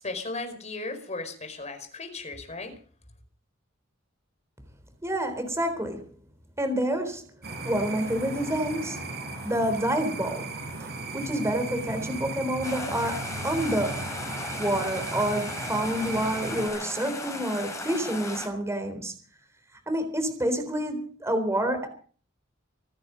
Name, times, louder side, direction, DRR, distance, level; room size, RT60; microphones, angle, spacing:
voice 1, 0.0-2.8, left 3 dB, 35° left, 6 dB, 4.9 m, -36 dB
voice 2, 5.0-6.0 6.6-7.3 7.6-9.0 9.4-10.5 11.1-14.1 14.6-19.1 19.9-21.9, right 1 dB, 15° right, 7 dB, 3.9 m, -28 dB
sound 1, 7.4-16.7, right 2 dB, 55° right, 4.4 m, -36 dB
sound 2, 12.6-18.5, left 2 dB, 15° left, 5.2 m, -36 dB
25.5 x 10.5 x 5.2 m, 0.42 s
head